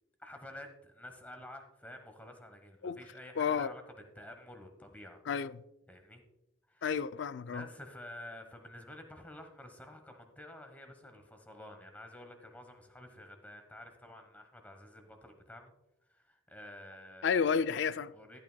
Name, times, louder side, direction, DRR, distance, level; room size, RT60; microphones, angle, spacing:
voice 1, 0.2-3.8 4.1-5.2 5.9-6.2 6.7-7.0 7.5-15.7 16.1-17.4 18.1-18.4, left 1 dB, 10° left, 1.0 m, -50 dB
voice 2, 3.4-3.7 5.3-5.6 6.8-7.6 17.2-18.1, left 6 dB, 65° left, 0.3 m, -31 dB
14.0 x 8.8 x 2.2 m
head